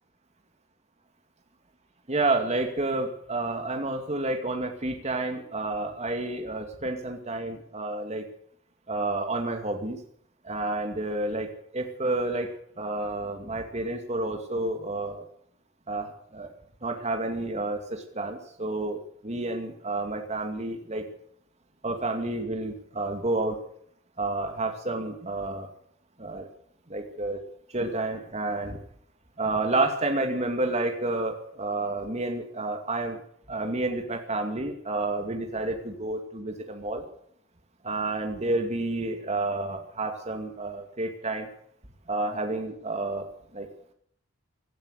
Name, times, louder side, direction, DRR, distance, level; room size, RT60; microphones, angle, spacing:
voice 1, 2.1-8.2 8.9-10.0 10.4-15.2 15.9-16.5 16.8-21.1 21.8-23.6 24.2-25.7 26.2-26.5 26.9-27.4 27.7-28.8 29.4-33.2 33.5-37.0 37.8-41.5 42.1-43.2 43.5-43.7, right 2 dB, 30° right, 4 dB, 2.3 m, -30 dB
17.5 x 12.5 x 6.6 m, 0.66 s
head